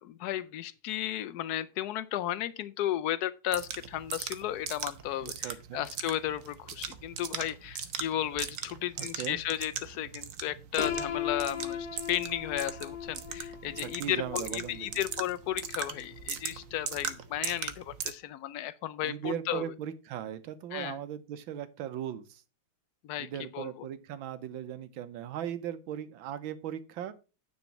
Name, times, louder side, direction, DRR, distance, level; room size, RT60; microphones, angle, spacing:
voice 1, 0.0-19.6 20.7-21.0 23.0-23.9, left 12 dB, 80° left, 0.8 m, -34 dB
sound 1, 3.5-18.1, right 8 dB, 55° right, 0.9 m, -40 dB
voice 2, 5.2-5.8 9.0-9.4 13.8-14.9 19.0-22.4 23.2-27.1, right 10 dB, 75° right, 1.5 m, -38 dB
Piano, 10.8-16.6, left 7 dB, 60° left, 1.1 m, -38 dB
9.6 x 4.2 x 5.9 m
omnidirectional pair, 2.3 m